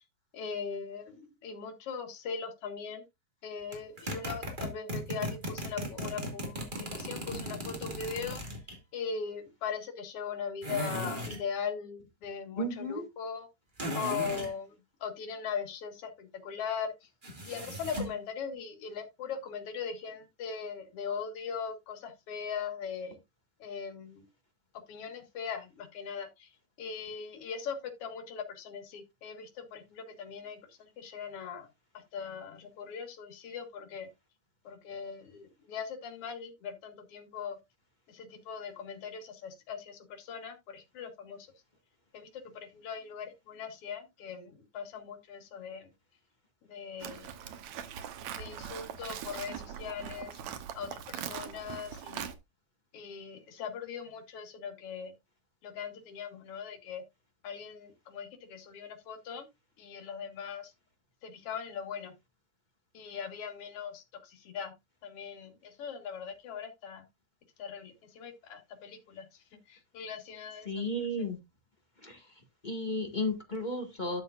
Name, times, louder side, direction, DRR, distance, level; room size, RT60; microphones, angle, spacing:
voice 1, 0.3-3.0 3.4-8.4 8.9-13.5 13.9-14.8 15.0-16.9 17.5-23.2 23.6-24.2 24.9-26.5 26.8-31.7 32.1-34.1 34.6-37.6 38.1-41.5 42.1-45.9 46.6-47.3 48.3-50.4 50.8-52.3 52.9-55.1 55.6-57.0 57.4-59.5 59.8-60.7 61.2-62.1 62.9-64.7 65.0-67.0 67.6-69.3 69.7-70.8, left 6 dB, 55° left, 2.4 m, -40 dB
sound 1, 3.7-8.8 10.6-11.4 13.8-14.5 17.2-18.2, equal, 20° right, 1.9 m, -37 dB
voice 2, 12.6-13.1 70.6-71.4 72.0-72.3 72.6-74.2, left 1 dB, 20° left, 1.3 m, -33 dB
Livestock farm animals working animals, 47.0-52.3, right 9 dB, 70° right, 2.2 m, -41 dB
12.5 x 6.9 x 2.5 m
omnidirectional pair, 3.5 m